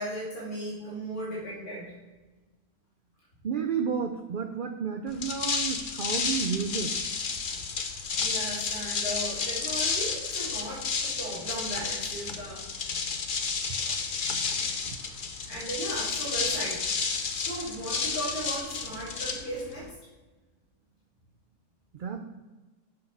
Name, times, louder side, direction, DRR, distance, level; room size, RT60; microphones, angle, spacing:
voice 1, 0.0-1.9 8.2-12.7 15.5-16.9 17.3-19.9, right 1 dB, 80° left, -8 dB, 3.0 m, -36 dB
voice 2, 3.4-6.9 21.9-22.2, right 6 dB, 70° right, 6 dB, 0.5 m, -31 dB
sound 1, 5.1-19.9, left 5 dB, 45° left, 0.7 m, -31 dB
7.0 x 5.7 x 5.4 m, 1.2 s
omnidirectional pair, 1.5 m